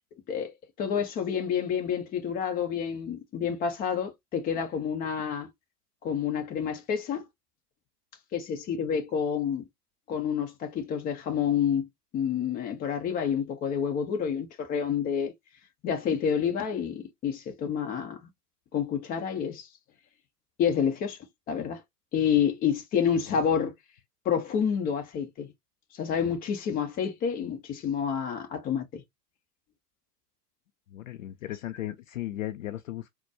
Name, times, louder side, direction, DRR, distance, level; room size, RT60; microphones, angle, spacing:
voice 1, 0.3-5.5 6.0-7.2 8.3-9.6 10.1-11.9 12.1-15.3 15.8-18.2 18.7-19.7 20.6-21.2 21.5-21.8 22.1-23.7 24.2-25.5 25.9-29.0, left 7 dB, 20° left, 0.8 m, -28 dB
voice 2, 30.9-33.1, left 14 dB, 55° left, 0.5 m, -36 dB
4.1 x 2.2 x 2.7 m
figure-of-eight pair, 105°, 47 cm